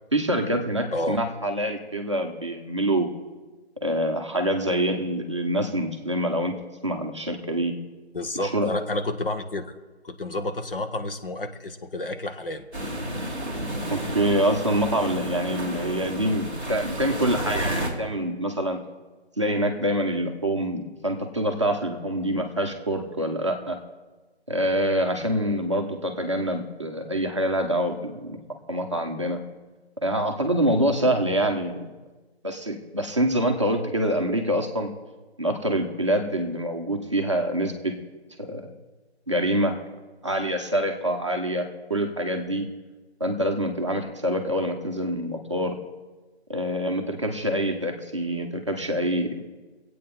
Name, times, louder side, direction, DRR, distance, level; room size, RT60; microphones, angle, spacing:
voice 1, 0.1-3.1 3.8-6.5 6.8-7.7 8.3-8.7 13.9-18.8 19.4-23.8 24.5-28.4 28.7-29.4 30.0-31.9 32.4-34.9 35.4-37.9 38.4-38.7 39.3-39.8 40.2-42.7 43.2-45.8 46.5-49.3, right 1 dB, 25° right, 3 dB, 0.8 m, -25 dB
voice 2, 8.1-9.7 10.0-12.7 13.1-13.2 25.2-25.3, left 2 dB, 55° left, 6 dB, 1.1 m, -30 dB
sound 1, 12.7-17.9, right 1 dB, 10° left, 1.6 m, -31 dB
23.0 x 8.5 x 3.7 m, 1.2 s
figure-of-eight pair, 165°, 33 cm